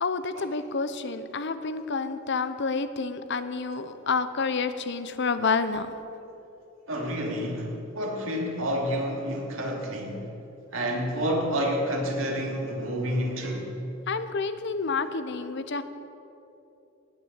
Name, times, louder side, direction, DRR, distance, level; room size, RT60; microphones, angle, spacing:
voice 1, 0.0-5.9 14.1-15.8, left 4 dB, 60° left, 11 dB, 0.8 m, -29 dB
voice 2, 6.9-10.3 10.7-13.8, equal, 80° right, -1 dB, 2.9 m, -29 dB
18.0 x 6.9 x 8.9 m, 3.0 s
head